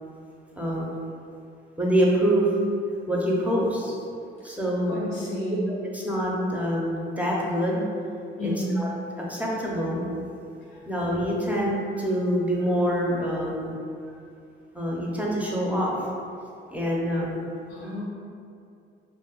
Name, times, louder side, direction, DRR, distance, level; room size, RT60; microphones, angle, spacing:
voice 1, 0.6-0.9 1.8-2.5 3.1-4.0 4.4-5.0 5.7-7.8 8.4-8.9 9.2-10.1 10.9-13.7 14.7-15.9 16.7-17.4 17.8-17.9, equal, 5° right, -4 dB, 0.6 m, -25 dB
voice 2, 4.9-5.7 8.4-8.7 17.7-18.0, left 1 dB, 85° left, -5 dB, 0.9 m, -31 dB
2.6 x 2.3 x 3.6 m, 2.5 s
cardioid pair, 90°, 20 cm